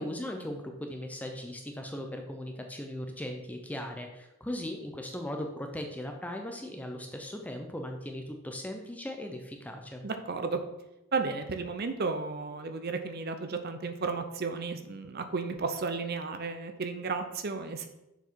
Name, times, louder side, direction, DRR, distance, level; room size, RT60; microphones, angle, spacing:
voice 1, 0.0-10.0, left 1 dB, 5° left, 3 dB, 0.5 m, -38 dB
voice 2, 10.0-10.6 11.1-17.9, right 4 dB, 45° right, 7 dB, 0.5 m, -33 dB
6.8 x 4.6 x 4.5 m, 0.92 s
head